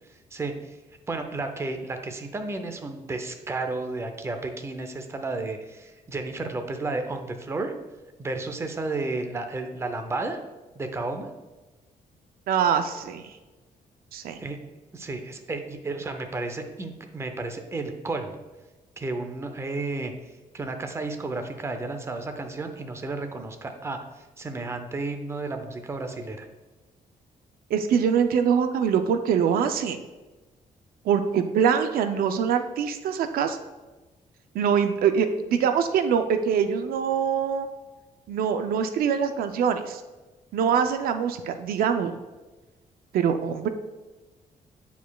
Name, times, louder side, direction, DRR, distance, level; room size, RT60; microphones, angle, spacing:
voice 1, 0.3-0.8 1.1-7.7 8.2-10.4 10.7-11.3 14.4-14.6 14.9-18.4 19.0-26.5, right 3 dB, 20° right, 6 dB, 0.5 m, -32 dB
voice 2, 12.5-13.3 14.1-14.4 27.7-30.0 31.1-33.6 34.5-37.7 38.3-40.0 40.5-42.2 43.1-43.7, right 7 dB, 90° right, 8 dB, 0.4 m, -24 dB
9.2 x 4.5 x 2.3 m, 1.2 s
cardioid pair, 140°, 15 cm